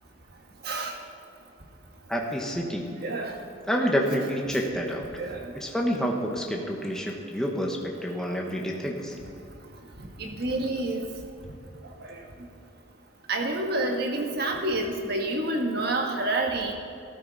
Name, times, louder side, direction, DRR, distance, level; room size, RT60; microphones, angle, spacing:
voice 1, 0.6-0.9 3.0-3.3 5.1-5.5 10.2-11.0 12.1-12.2 13.3-16.7, right 2 dB, 55° right, 2 dB, 1.4 m, -28 dB
voice 2, 2.1-2.9 3.7-5.1 5.5-9.1, equal, 5° left, 0 dB, 1.2 m, -28 dB
14.0 x 13.0 x 4.1 m, 2.7 s
head